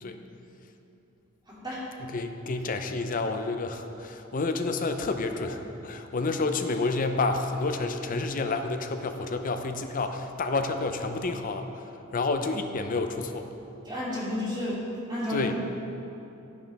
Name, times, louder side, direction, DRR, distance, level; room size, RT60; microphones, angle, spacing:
voice 1, 1.5-1.9 13.8-15.5, left 1 dB, 20° right, -8 dB, 2.5 m, -32 dB
voice 2, 2.1-11.8 12.1-13.5 15.3-15.5, left 3 dB, 40° left, 6 dB, 0.6 m, -29 dB
11.0 x 9.5 x 3.5 m, 2.9 s
head